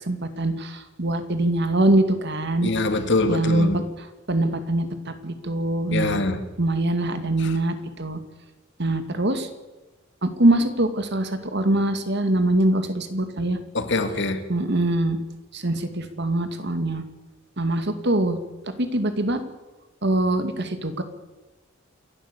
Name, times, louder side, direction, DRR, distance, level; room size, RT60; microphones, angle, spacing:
voice 1, 0.1-2.7 3.3-4.9 5.2-6.2 6.6-8.2 8.8-9.5 10.2-13.6 14.5-15.2 15.5-17.0 17.6-18.4 18.8-19.4 20.0-21.0, right 1 dB, 60° right, 2.3 m, -23 dB
voice 2, 2.6-3.8 5.9-6.4 13.7-14.4, left 2 dB, 60° left, 2.1 m, -23 dB
28.0 x 12.0 x 8.5 m
head